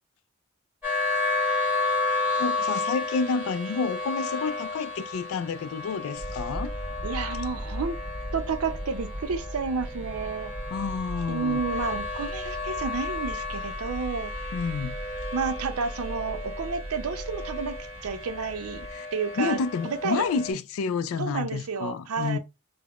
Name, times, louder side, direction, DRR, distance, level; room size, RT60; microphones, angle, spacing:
sound 1, 0.8-20.5, left 3 dB, 5° right, 1.3 m, -33 dB
voice 1, 2.4-6.7 10.7-11.7 14.5-15.0 18.9-19.1 19.4-22.4, left 5 dB, 75° left, 0.3 m, -29 dB
sound 2, 6.2-18.9, equal, 50° right, 1.0 m, -38 dB
voice 2, 7.0-8.0 8.3-10.5 11.3-14.5 15.3-17.8 18.0-19.6 19.8-20.2 21.2-22.4, right 5 dB, 90° right, 0.5 m, -31 dB
3.4 x 2.0 x 2.3 m
head